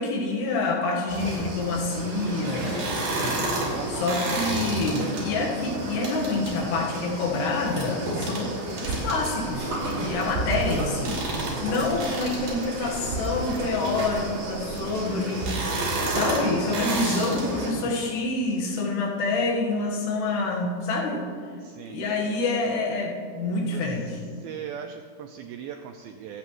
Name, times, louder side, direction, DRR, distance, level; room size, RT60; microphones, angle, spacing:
voice 1, 0.0-8.5 8.8-11.2 11.6-15.6 16.1-21.3 21.9-24.1, left 3 dB, 75° left, -1 dB, 3.5 m, -27 dB
sound 1, 1.1-17.7, right 2 dB, 55° right, 4.2 m, -30 dB
voice 2, 3.7-4.3 10.1-10.7 17.0-17.3 21.6-22.0 23.5-26.4, right 8 dB, 90° right, 6 dB, 2.1 m, -40 dB
sound 2, 9.6-14.9, right 6 dB, 70° right, 1.8 m, -42 dB
24.5 x 8.4 x 3.1 m, 2.2 s
omnidirectional pair, 4.8 m